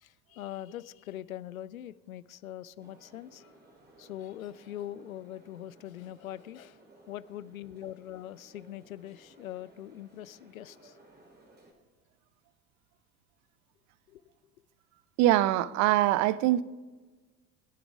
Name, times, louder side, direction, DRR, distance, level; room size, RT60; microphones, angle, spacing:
voice 1, 0.0-3.5 4.0-6.8 7.1-11.0 14.1-14.2, left 12 dB, 75° left, 0.5 m, -42 dB
sound 1, 2.8-11.7, right 1 dB, 25° right, 3.4 m, -59 dB
voice 2, 15.2-16.6, right 14 dB, 40° right, 0.6 m, -23 dB
21.0 x 11.0 x 3.5 m
figure-of-eight pair, 65°, 42 cm